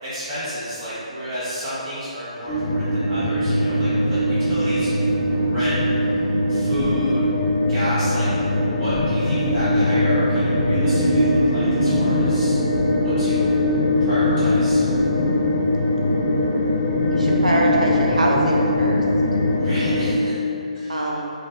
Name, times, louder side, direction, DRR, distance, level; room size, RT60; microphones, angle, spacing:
voice 1, 0.0-5.8 6.5-7.3 7.7-8.3 8.6-12.6 12.9-13.6 14.0-14.8 19.6-20.3 20.7-21.0, equal, 30° right, -14 dB, 1.4 m, -31 dB
sound 1, 2.5-20.1, left 1 dB, 45° left, 0.5 m, -20 dB
voice 2, 17.1-19.0 20.9-21.3, right 1 dB, 80° right, -2 dB, 0.6 m, -23 dB
4.8 x 2.0 x 2.6 m, 2.7 s
figure-of-eight pair, 140°, 4 cm